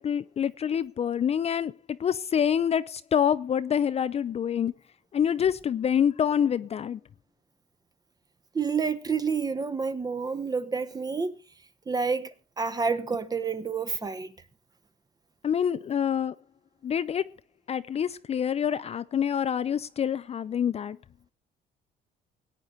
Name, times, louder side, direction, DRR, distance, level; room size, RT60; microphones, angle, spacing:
voice 1, 0.0-4.7 5.1-7.0 15.4-16.3 16.8-17.2 17.7-21.0, left 8 dB, 40° left, 0.6 m, -26 dB
voice 2, 8.5-11.4 11.9-12.3 12.6-14.3, right 5 dB, 20° right, 1.2 m, -29 dB
19.0 x 8.9 x 4.0 m
cardioid pair, 110°, 17 cm